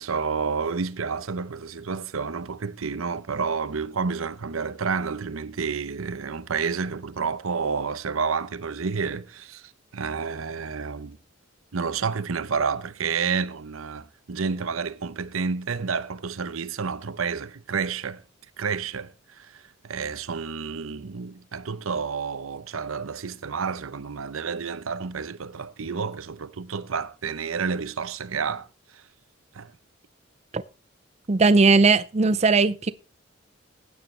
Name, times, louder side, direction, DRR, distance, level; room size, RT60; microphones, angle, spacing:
voice 1, 0.0-11.2 11.7-18.2 18.6-28.7 28.9-29.0 29.5-29.7, right 5 dB, 90° right, 0.7 m, -30 dB
voice 2, 31.3-32.9, right 4 dB, 30° right, 0.5 m, -18 dB
15.5 x 9.5 x 3.2 m
head